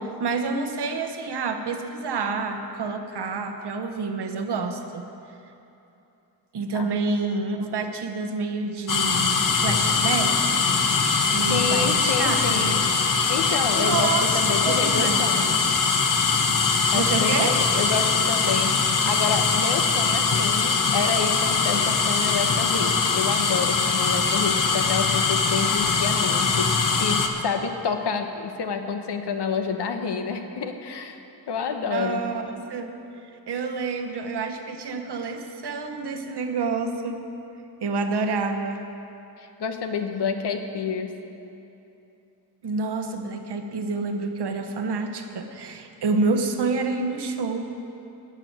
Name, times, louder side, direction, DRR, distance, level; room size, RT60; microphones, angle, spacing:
voice 1, 0.0-5.1 6.5-10.7 11.3-12.9 13.7-15.3 16.9-17.6 31.9-32.9 33.5-37.2 37.8-38.8 42.6-47.7, right 4 dB, 80° right, 6 dB, 1.1 m, -28 dB
sound 1, 8.9-27.3, left 5 dB, 50° left, 1.0 m, -22 dB
voice 2, 11.5-12.8 13.1-15.5 16.9-31.2 31.5-32.3 39.4-41.2, left 5 dB, 85° left, 6 dB, 1.1 m, -28 dB
12.5 x 6.8 x 9.4 m, 2.8 s
wide cardioid pair, 120°, 40 cm